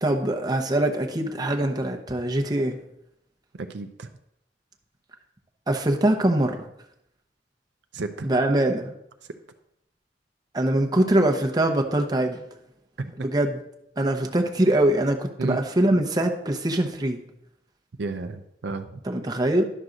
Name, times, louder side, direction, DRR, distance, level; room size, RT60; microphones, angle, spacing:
voice 1, 0.0-2.8 5.7-6.7 8.2-8.9 10.5-12.4 13.2-13.6 14.0-17.2 19.0-19.6, right 1 dB, 20° right, 3 dB, 0.8 m, -23 dB
voice 2, 3.5-4.1 7.9-8.3 13.0-13.3 15.4-15.6 18.0-19.0, right 3 dB, 70° right, 7 dB, 0.5 m, -33 dB
11.0 x 6.2 x 3.9 m, 0.79 s
head